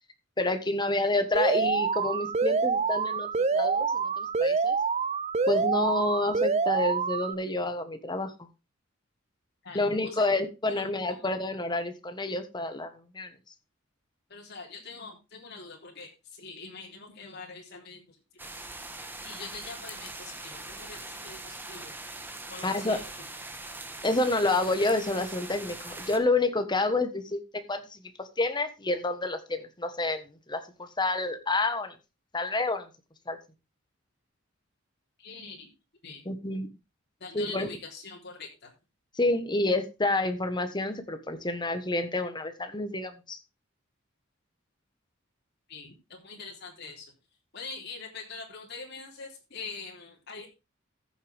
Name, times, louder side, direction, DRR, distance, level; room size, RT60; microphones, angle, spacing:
voice 1, 0.4-4.8 5.5-8.3 9.7-13.3 22.6-23.0 24.0-31.9 32.3-32.9 33.3-33.4 36.2-36.7 37.3-37.7 39.1-43.4, left 2 dB, 20° left, 8 dB, 1.4 m, -29 dB
Alarm, 1.3-7.3, right 5 dB, 35° right, 0.6 m, -26 dB
voice 2, 9.6-10.3 10.7-11.4 14.3-18.1 19.2-21.9 22.5-23.0 35.2-35.7 36.0-36.2 37.2-38.7 45.7-47.1 47.5-50.5, left 4 dB, 55° left, -1 dB, 3.7 m, -43 dB
sound 1, 18.4-26.2, right 2 dB, 10° right, 1.4 m, -42 dB
14.5 x 7.2 x 3.5 m, 0.28 s
head